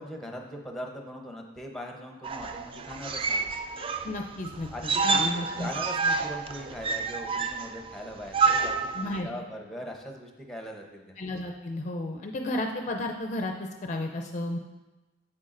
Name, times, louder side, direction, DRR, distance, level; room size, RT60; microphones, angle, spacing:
voice 1, 0.0-3.4 4.7-11.1, equal, ahead, 1 dB, 0.8 m, -40 dB
sound 1, 2.2-9.2, right 4 dB, 30° right, 0.3 m, -29 dB
voice 2, 4.0-4.7 5.0-5.7 9.0-9.3 11.2-14.6, left 1 dB, 40° left, 3 dB, 0.4 m, -32 dB
8.2 x 7.5 x 2.5 m, 1.1 s
head